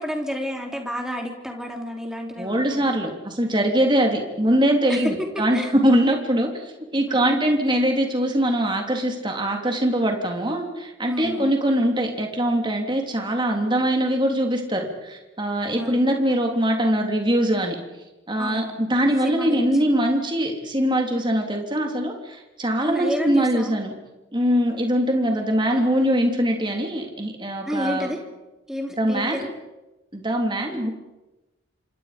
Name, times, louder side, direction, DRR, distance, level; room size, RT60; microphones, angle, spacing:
voice 1, 0.0-2.8 4.9-5.7 7.1-7.3 11.1-11.5 15.7-16.1 18.4-18.8 19.2-19.7 22.8-23.8 27.7-28.2 28.7-29.5 30.7-30.9, equal, 5° right, 2 dB, 3.3 m, -30 dB
voice 2, 2.4-17.8 18.3-23.9 24.3-28.1 29.0-29.4 30.1-30.9, right 1 dB, 25° right, 2 dB, 3.3 m, -22 dB
28.5 x 26.0 x 5.2 m, 1.0 s
head